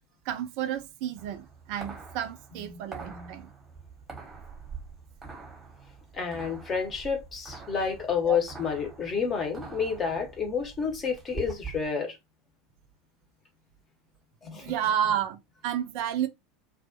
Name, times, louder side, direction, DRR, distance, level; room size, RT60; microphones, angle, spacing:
voice 1, 0.3-3.5 8.2-8.4 14.5-16.3, right 10 dB, 50° right, 0.3 m, -31 dB
sound 1, 1.2-11.9, right 5 dB, 15° right, 0.9 m, -45 dB
voice 2, 2.6-3.3 6.1-12.2 14.4-14.7, left 6 dB, 30° left, 0.8 m, -30 dB
2.3 x 2.1 x 2.7 m
figure-of-eight pair, 75°, 0 cm